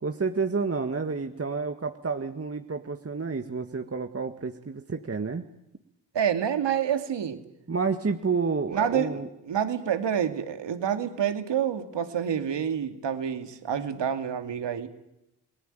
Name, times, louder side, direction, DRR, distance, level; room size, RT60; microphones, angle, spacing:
voice 1, 0.0-5.4 7.7-9.3, right 4 dB, 30° right, 6 dB, 1.8 m, -30 dB
voice 2, 6.1-7.4 8.7-9.2 9.5-14.9, right 8 dB, 70° right, 8 dB, 2.6 m, -28 dB
28.5 x 19.5 x 9.2 m, 0.87 s
supercardioid pair, 45°, 44 cm